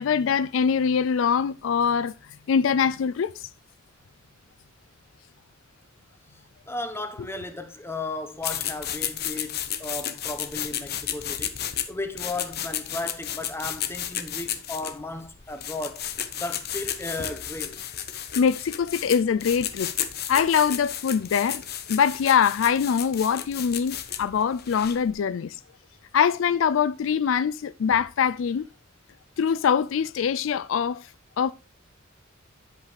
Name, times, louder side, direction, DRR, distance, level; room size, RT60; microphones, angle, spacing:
voice 1, 0.0-2.1 2.5-3.5 18.4-19.9 20.3-21.6 21.9-25.6 26.1-28.7 29.4-31.1 31.4-31.5, left 7 dB, 70° left, 0.4 m, -23 dB
voice 2, 6.7-11.6 11.9-16.0 16.3-17.8, left 2 dB, 10° left, 1.1 m, -35 dB
sound 1, 8.4-25.1, left 10 dB, 55° left, 1.0 m, -33 dB
10.5 x 8.3 x 3.3 m
head